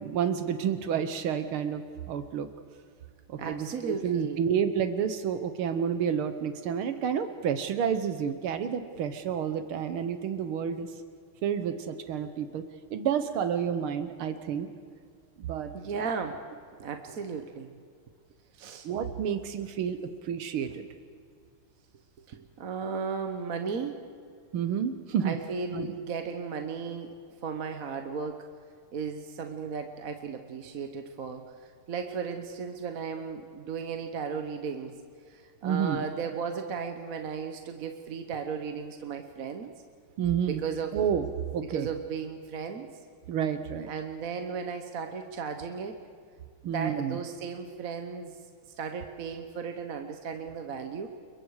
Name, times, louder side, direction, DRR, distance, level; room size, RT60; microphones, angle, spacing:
voice 1, 0.0-2.5 3.3-10.9 11.4-14.7 15.4-16.1 18.8-20.9 24.5-25.4 25.7-25.9 35.6-36.0 40.2-40.6 40.9-41.3 41.5-41.9 43.3-43.9 46.6-47.2, right 8 dB, 80° right, 9 dB, 1.8 m, -30 dB
voice 2, 3.4-4.4 15.7-16.4 16.8-17.7 18.5-18.9 22.3-24.0 25.2-27.2 27.4-28.5 28.9-35.0 35.3-39.7 40.5-41.0 41.6-42.9 43.9-46.0 46.7-48.4 48.8-51.1, right 5 dB, 50° right, 6 dB, 1.2 m, -35 dB
29.0 x 22.5 x 4.8 m, 2.2 s
omnidirectional pair, 2.3 m